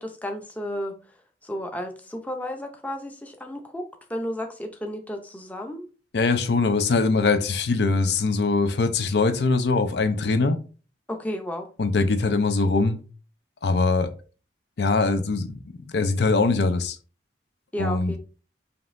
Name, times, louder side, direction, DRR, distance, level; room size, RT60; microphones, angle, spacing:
voice 1, 0.0-5.9 11.1-11.7 17.7-18.2, left 1 dB, 10° left, 0.5 m, -33 dB
voice 2, 6.1-10.6 11.8-13.0 13.6-14.1 14.8-15.6 15.9-17.0 17.8-18.2, left 3 dB, 70° left, 0.5 m, -22 dB
5.2 x 2.9 x 2.5 m
head